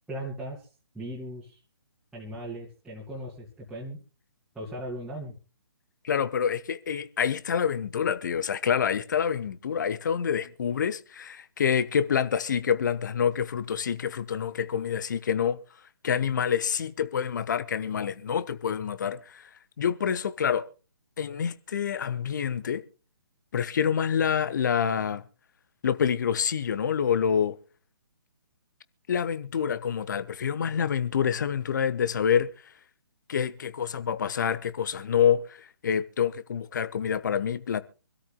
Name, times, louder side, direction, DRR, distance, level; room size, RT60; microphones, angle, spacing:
voice 1, 0.1-0.6 0.9-1.6 2.1-4.0 4.5-5.3, right 1 dB, 5° right, 2.5 m, -38 dB
voice 2, 6.0-15.6 16.0-19.5 19.8-20.7 21.2-22.8 23.5-25.2 25.8-27.6 29.1-32.5 33.3-37.8, left 7 dB, 45° left, 1.1 m, -27 dB
25.5 x 13.0 x 2.2 m
figure-of-eight pair, 135°, 13 cm